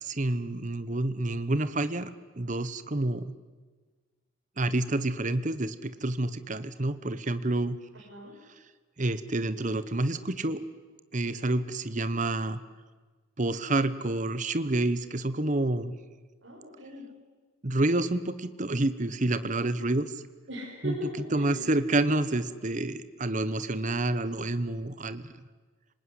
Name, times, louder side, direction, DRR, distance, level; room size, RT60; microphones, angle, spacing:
voice 1, 0.0-2.1 2.4-3.3 4.6-7.8 9.0-10.6 11.1-12.6 13.4-15.9 17.6-20.1 20.8-21.0 21.3-25.2, right 2 dB, 40° right, 13 dB, 1.0 m, -28 dB
voice 2, 7.9-8.3 16.4-17.0 20.5-21.6, equal, 60° right, -4 dB, 6.6 m, -39 dB
26.0 x 20.0 x 9.7 m, 1.4 s
head